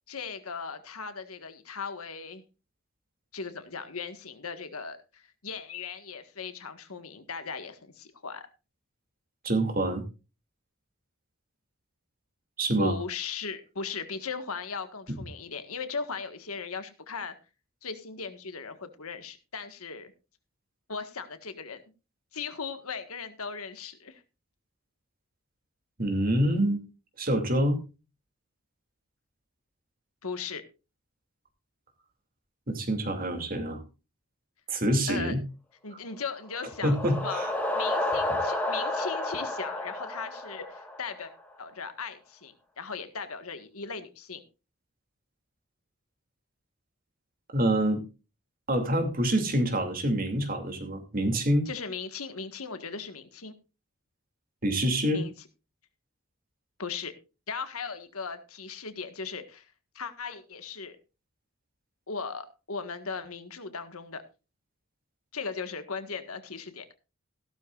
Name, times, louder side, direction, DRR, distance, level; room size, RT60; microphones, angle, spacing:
voice 1, 0.1-2.4 3.3-8.5 12.8-17.3 17.8-20.1 20.9-21.8 22.3-24.2 30.2-30.6 35.1-35.3 35.8-37.0 37.2-41.3 41.6-44.4 51.7-53.5 55.1-55.3 56.8-57.1 57.5-59.7 60.0-61.0 62.1-64.2 65.3-66.9, left 5 dB, 85° left, 9 dB, 1.6 m, -38 dB
voice 2, 9.4-10.0 12.6-13.0 15.1-15.2 26.0-26.8 27.2-27.8 32.7-33.8 34.7-35.4 36.8-37.5 47.5-48.0 48.7-51.7 54.6-55.2, right 1 dB, 40° right, 6 dB, 2.6 m, -26 dB
sound 1, 36.4-41.3, left 2 dB, 10° left, 2.1 m, -31 dB
16.0 x 12.5 x 2.5 m, 0.30 s
head